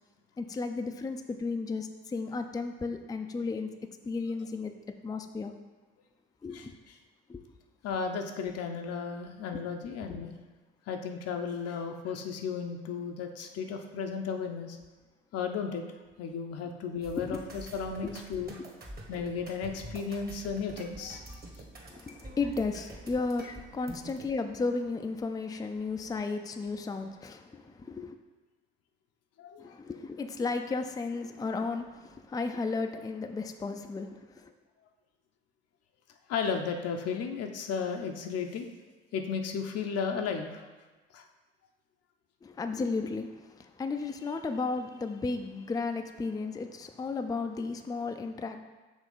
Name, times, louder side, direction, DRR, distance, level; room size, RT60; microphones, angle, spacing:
voice 1, 0.4-3.7 4.1-4.7 5.0-5.5 6.4-6.8 7.3-7.4 9.9-10.1 16.7-16.8 17.2-17.4 18.0-18.1 21.9-28.2 29.6-34.5 42.4-48.6, left 4 dB, 10° left, 6 dB, 0.5 m, -34 dB
voice 2, 7.8-10.3 10.9-14.8 15.3-15.8 16.2-18.5 19.1-21.4 29.4-29.8 36.3-38.7 39.1-40.7 41.1-41.2, left 6 dB, 50° left, 4 dB, 0.7 m, -34 dB
sound 1, 17.0-24.2, right 1 dB, 30° right, 1.4 m, -46 dB
6.2 x 3.2 x 5.4 m, 1.2 s
hypercardioid pair, 50°, 30 cm